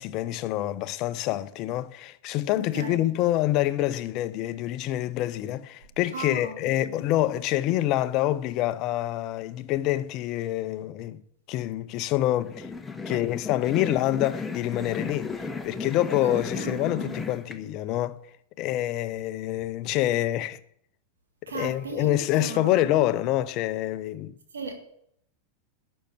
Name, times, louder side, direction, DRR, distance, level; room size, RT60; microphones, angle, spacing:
voice 1, 0.0-11.2 11.5-12.7 13.1-18.2 18.6-20.6 21.5-24.3, left 14 dB, 40° left, 0.7 m, -26 dB
voice 2, 2.6-3.1 6.1-7.0 16.2-17.1 21.5-22.9 24.5-24.7, right 3 dB, 70° right, 1.9 m, -37 dB
sound 1, 12.4-17.6, left 4 dB, 10° left, 0.8 m, -34 dB
11.5 x 6.4 x 8.2 m
figure-of-eight pair, 90°, 0 cm